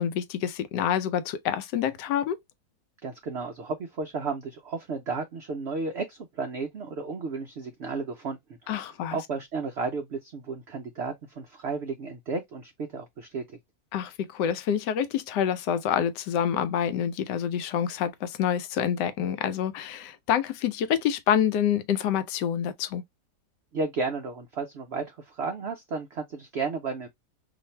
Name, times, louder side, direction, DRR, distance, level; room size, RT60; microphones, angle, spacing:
voice 1, 0.0-2.4 8.7-9.2 13.9-23.0, left 9 dB, 85° left, 1.2 m, -27 dB
voice 2, 3.0-13.6 23.7-27.1, right 4 dB, 80° right, 0.5 m, -33 dB
2.7 x 2.5 x 4.2 m
omnidirectional pair, 1.8 m